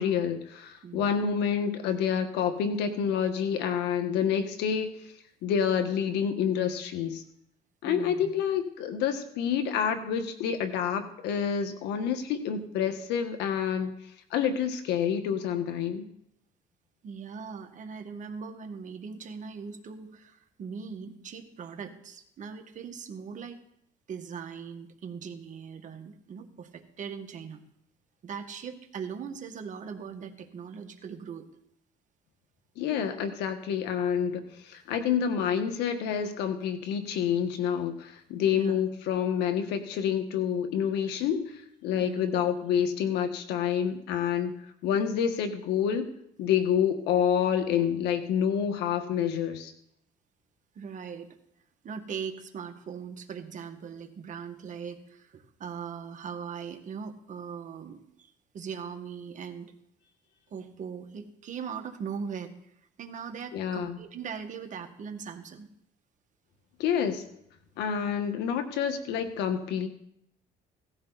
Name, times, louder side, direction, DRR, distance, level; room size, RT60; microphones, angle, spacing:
voice 1, 0.0-4.9 5.4-7.2 7.8-13.9 14.3-16.0 32.8-41.6 41.8-44.5 44.8-46.1 46.4-49.7 63.5-64.0 66.8-67.2 67.8-69.9, left 8 dB, 90° left, 8 dB, 1.6 m, -28 dB
voice 2, 7.8-8.3 17.0-23.6 24.1-27.6 28.2-31.5 38.5-38.8 42.0-42.4 50.8-51.3 51.8-58.0 58.5-59.7 60.5-62.5 63.0-65.7, right 6 dB, 50° right, 5 dB, 1.9 m, -40 dB
17.5 x 14.0 x 4.2 m, 0.75 s
cardioid pair, 110°, 17 cm